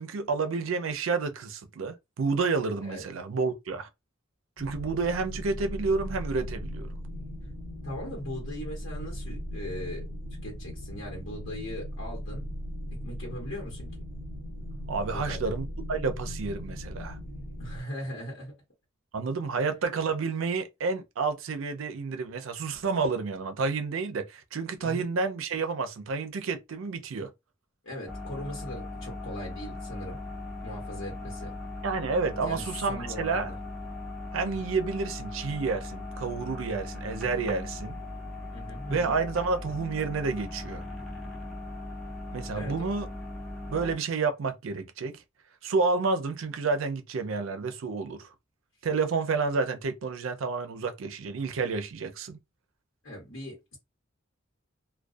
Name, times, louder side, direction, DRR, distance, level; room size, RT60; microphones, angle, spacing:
voice 1, 0.0-3.9 4.6-6.9 14.9-17.2 19.1-27.3 31.8-33.5 34.3-38.0 38.9-40.8 42.3-43.1 43.7-45.2 45.6-48.3 48.8-52.4, right 4 dB, 75° right, 0.5 m, -30 dB
sound 1, 4.6-17.8, equal, 30° left, 0.8 m, -38 dB
voice 2, 7.8-10.0 10.4-12.5 13.0-13.9 15.1-15.5 17.6-18.5 19.5-19.6 24.8-25.0 27.8-30.2 30.6-31.5 32.3-33.6 38.5-39.2 42.5-42.8 53.0-53.8, left 1 dB, 65° left, 1.1 m, -39 dB
sound 2, 28.1-43.9, left 2 dB, ahead, 0.6 m, -39 dB
2.3 x 2.2 x 2.5 m
head